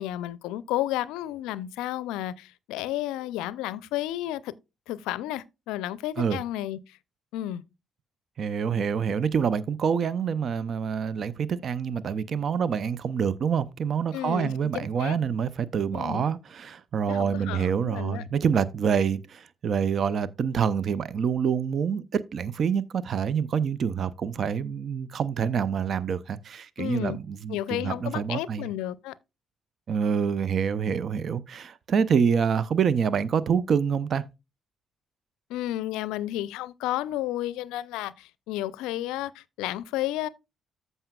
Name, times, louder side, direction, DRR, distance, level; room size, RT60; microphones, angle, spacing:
voice 1, 0.0-4.5 4.9-7.0 7.3-7.6 14.1-15.2 15.9-16.2 17.1-18.2 26.8-27.2 27.5-29.1 35.5-40.3, left 14 dB, 75° left, 0.4 m, -32 dB
voice 2, 8.4-28.7 29.9-34.2, right 7 dB, 55° right, 0.5 m, -26 dB
14.0 x 5.5 x 2.3 m
hypercardioid pair, 45°, 0 cm